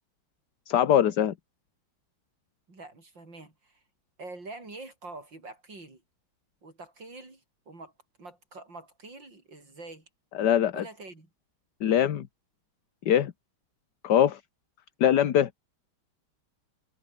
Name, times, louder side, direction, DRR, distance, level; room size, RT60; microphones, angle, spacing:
voice 1, 0.7-1.3 10.3-10.8 11.8-12.3 13.0-13.3 14.0-14.4 15.0-15.5, left 10 dB, 60° left, 1.7 m, -22 dB
voice 2, 2.7-3.8 4.2-6.0 6.6-7.9 8.2-10.1 10.7-11.3, right 2 dB, 60° right, 6.9 m, -45 dB
omnidirectional pair, 2.2 m